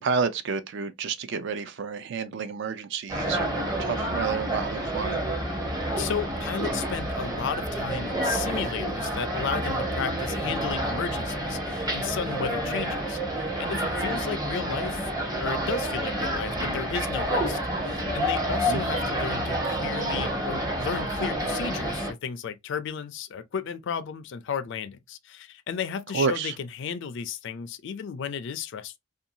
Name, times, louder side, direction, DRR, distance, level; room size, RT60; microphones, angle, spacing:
voice 1, 0.0-3.5 3.8-5.2 18.7-18.8 26.1-26.5, right 5 dB, 55° right, 0.4 m, -29 dB
sound 1, 3.1-22.1, right 1 dB, 15° right, 0.7 m, -29 dB
voice 2, 5.9-15.1 15.4-28.9, left 7 dB, 55° left, 0.3 m, -34 dB
2.6 x 2.2 x 2.7 m
head